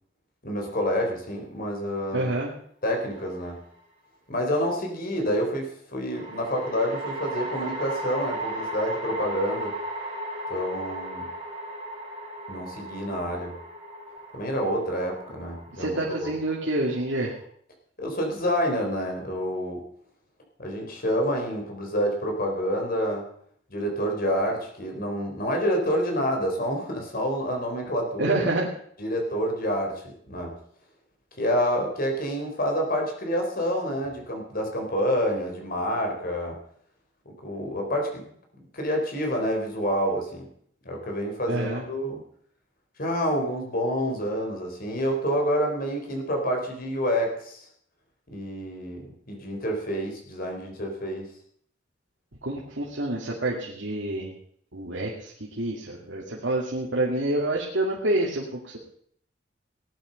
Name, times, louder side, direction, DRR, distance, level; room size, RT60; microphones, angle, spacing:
voice 1, 0.4-2.3 2.8-3.6 4.3-9.7 10.5-11.3 12.5-13.5 14.3-16.3 18.0-19.9 20.6-23.2 23.7-28.4 29.0-30.5 31.4-36.6 37.3-38.2 38.7-40.5 40.8-42.2 43.0-47.6 48.3-51.3, equal, 50° left, 2 dB, 4.0 m, -28 dB
voice 2, 2.1-2.5 15.8-17.3 28.2-28.7 41.5-41.8 52.4-54.3 54.7-58.8, right 1 dB, 85° right, -3 dB, 2.5 m, -27 dB
sound 1, 3.0-3.7 6.1-17.4, right 1 dB, 30° right, 5.0 m, -36 dB
18.0 x 10.5 x 5.3 m, 0.63 s
head